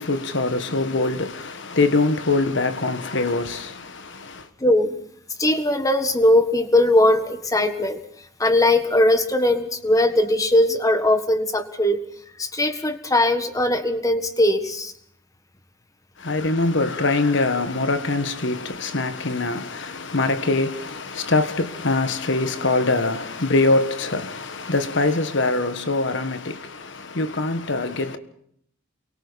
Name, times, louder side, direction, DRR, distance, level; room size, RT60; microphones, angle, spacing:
voice 1, 0.0-4.5 16.2-28.2, left 3 dB, 60° left, 1.5 m, -23 dB
voice 2, 4.6-5.0 5.4-8.0 8.4-12.0 12.4-14.9, left 1 dB, 15° left, 1.5 m, -19 dB
29.0 x 23.5 x 4.1 m
head